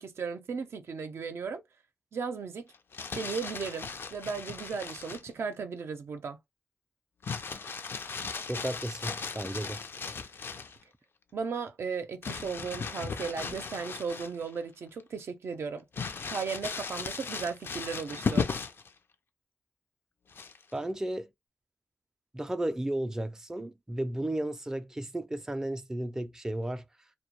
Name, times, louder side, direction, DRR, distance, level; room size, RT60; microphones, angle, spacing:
voice 1, 0.0-1.6 2.1-2.7 3.2-6.4 11.3-15.8 16.3-18.5, right 5 dB, 75° right, 0.5 m, -36 dB
Crumpling crinkling, 2.7-5.3 7.2-10.8 12.2-14.6 15.0-15.1 15.9-18.9 20.3-20.8, left 5 dB, 60° left, 0.4 m, -36 dB
voice 2, 8.5-9.9 20.7-21.3 22.3-26.8, right 1 dB, 10° right, 0.4 m, -34 dB
2.2 x 2.1 x 2.8 m
cardioid pair, 65°, 4 cm